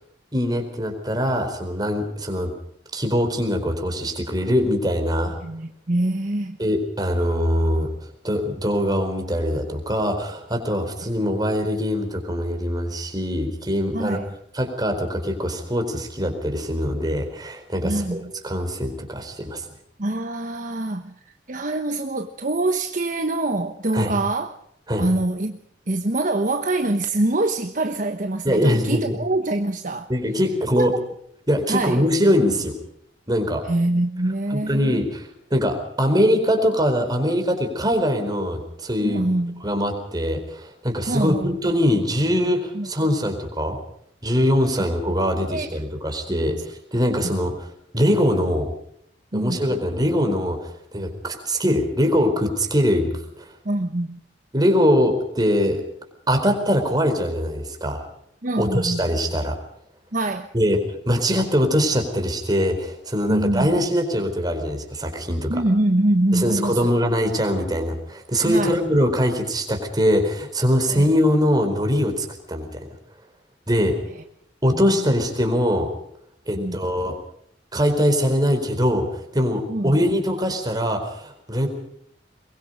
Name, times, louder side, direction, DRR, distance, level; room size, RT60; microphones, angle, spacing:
voice 1, 0.3-2.5 2.9-5.4 6.6-7.9 8.2-14.2 14.5-19.6 23.9-24.1 24.9-25.0 28.4-29.2 30.1-30.9 31.5-32.7 33.3-33.6 34.5-39.2 39.6-43.8 44.2-47.7 47.9-48.7 49.3-53.4 54.5-55.8 56.3-58.0 58.6-59.6 60.5-65.6 66.3-72.8 73.7-73.9 74.6-75.9 76.5-77.2 77.7-81.7, equal, 25° right, 5 dB, 4.5 m, -22 dB
voice 2, 5.4-6.6 13.9-14.3 17.8-18.3 20.0-21.1 21.5-24.5 25.0-25.6 25.9-30.1 30.7-30.9 31.7-32.0 33.6-35.0 39.0-39.6 41.1-41.6 42.7-42.9 44.8-44.9 45.5-45.8 49.3-49.6 53.6-54.2 58.4-59.0 60.1-60.5 63.3-63.8 65.5-67.0 68.5-68.8 70.9-71.1 74.7-75.1 76.6-76.8 79.7-80.2, right 2 dB, 45° right, 6 dB, 1.2 m, -24 dB
23.0 x 22.5 x 5.2 m, 0.71 s
head